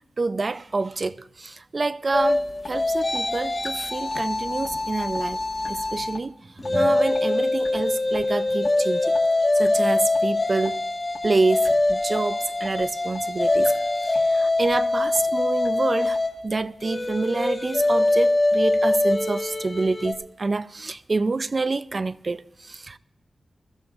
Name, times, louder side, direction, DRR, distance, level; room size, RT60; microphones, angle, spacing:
voice 1, 0.2-5.4 5.7-9.1 9.5-10.8 11.2-23.0, right 3 dB, 35° right, 0.4 m, -27 dB
sound 1, 2.1-6.2 6.6-20.1, left 2 dB, 30° left, 1.5 m, -23 dB
sound 2, 2.6-2.7 3.1-3.2 3.6-3.7 4.1-4.3 4.6-4.8 5.1-5.2 5.6-5.7 6.1-6.2 6.6-6.7 7.1-7.2 7.6-7.8 8.1-8.3 8.6-8.7 9.1-9.2 9.6-9.7 10.1-10.2 10.6-10.7 11.1-11.3 11.6-11.7 12.1-12.2 12.6-12.7 13.1-13.2 13.6-13.7 14.1-14.3 14.6-14.8 15.1-15.2 15.6-15.7 16.1-16.2, left 4 dB, 60° left, 1.6 m, -39 dB
22.5 x 14.5 x 2.5 m
wide cardioid pair, 130°, 0 cm